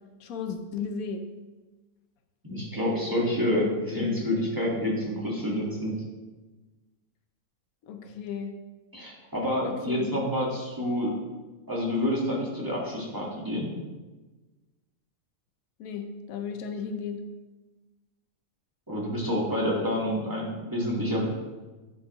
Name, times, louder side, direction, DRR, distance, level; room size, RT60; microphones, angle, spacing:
voice 1, 0.2-1.2 7.8-8.6 9.6-10.2 15.8-17.3, left 5 dB, 85° left, 6 dB, 1.2 m, -35 dB
voice 2, 2.4-5.9 8.9-11.1 11.7-13.7 18.9-21.3, left 1 dB, 15° right, -5 dB, 1.6 m, -28 dB
10.0 x 5.5 x 3.0 m, 1.2 s
omnidirectional pair, 1.5 m